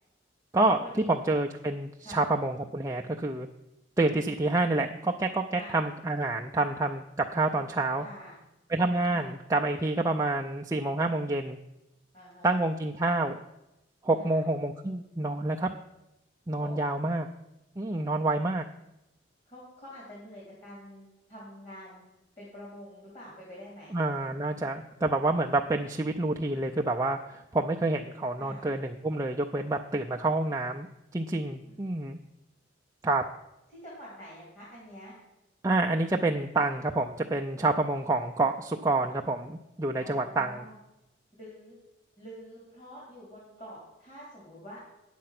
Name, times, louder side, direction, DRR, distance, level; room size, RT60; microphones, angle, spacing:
voice 1, 1.1-3.5 4.0-8.0 8.7-11.6 12.4-13.4 14.0-15.7 16.5-17.3 17.8-18.7 23.9-30.9 31.1-32.2 33.0-33.2 35.6-40.7, right 2 dB, 15° right, 1 dB, 0.4 m, -28 dB
voice 2, 8.0-8.4 9.1-9.3 12.1-12.6 14.2-14.4 16.6-16.8 19.5-22.0 22.4-23.9 28.4-28.7 31.6-31.8 33.7-35.1 39.9-40.7 41.4-41.8 42.2-44.8, equal, 35° left, -6 dB, 3.2 m, -47 dB
9.3 x 7.6 x 5.9 m, 0.94 s
head